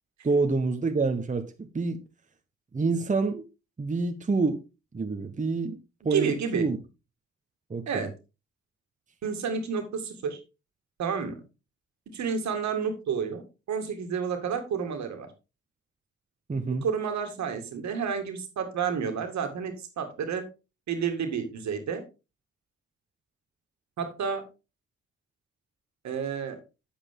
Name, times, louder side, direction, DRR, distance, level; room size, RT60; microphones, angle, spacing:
voice 1, 0.2-2.0 2.7-3.4 3.8-4.6 4.9-5.8 6.0-6.8 7.7-8.1 16.5-16.8, right 3 dB, 25° right, 1.1 m, -27 dB
voice 2, 6.1-6.7 7.9-8.1 9.2-10.4 11.0-11.3 12.1-13.4 13.7-15.3 16.8-20.5 20.9-22.0 24.0-24.4 26.0-26.6, right 6 dB, 65° right, 2.1 m, -30 dB
8.4 x 7.9 x 3.7 m
hypercardioid pair, 50°, 31 cm